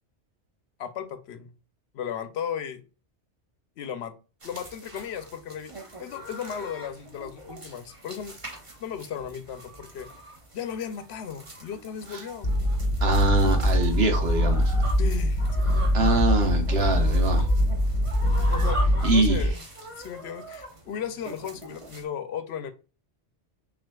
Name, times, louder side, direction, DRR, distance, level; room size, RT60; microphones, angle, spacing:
voice 1, 0.8-1.5 1.9-2.8 3.8-4.1 4.4-5.7 6.0-8.4 8.8-10.1 10.5-12.5 15.0-15.8 18.5-19.6 20.0-22.7, left 8 dB, 75° left, 0.8 m, -35 dB
sound 1, 4.4-22.0, right 1 dB, 30° right, 0.9 m, -42 dB
sound 2, 12.4-19.5, equal, 30° left, 0.8 m, -23 dB
voice 2, 13.0-14.8 15.9-17.5 19.0-19.5, right 2 dB, 65° right, 1.1 m, -24 dB
5.9 x 2.4 x 2.2 m
omnidirectional pair, 1.1 m